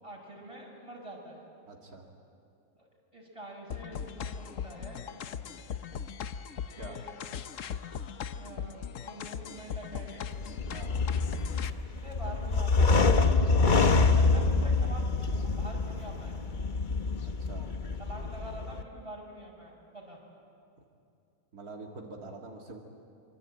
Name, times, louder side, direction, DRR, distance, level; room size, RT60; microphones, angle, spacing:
voice 1, 0.0-1.4 2.7-5.1 6.8-7.2 7.5-7.7 8.4-10.2 11.6-13.1 14.1-16.4 18.0-20.2, right 1 dB, 20° right, -1 dB, 6.1 m, -46 dB
voice 2, 1.7-2.1 6.8-7.0 10.7-11.0 17.2-17.7 21.5-22.8, right 3 dB, 85° right, 0 dB, 2.6 m, -45 dB
sound 1, 3.7-11.7, left 7 dB, 65° left, 1.1 m, -39 dB
sound 2, 10.3-18.8, left 3 dB, 35° left, 1.0 m, -26 dB
25.5 x 25.0 x 8.9 m, 2.5 s
omnidirectional pair, 1.6 m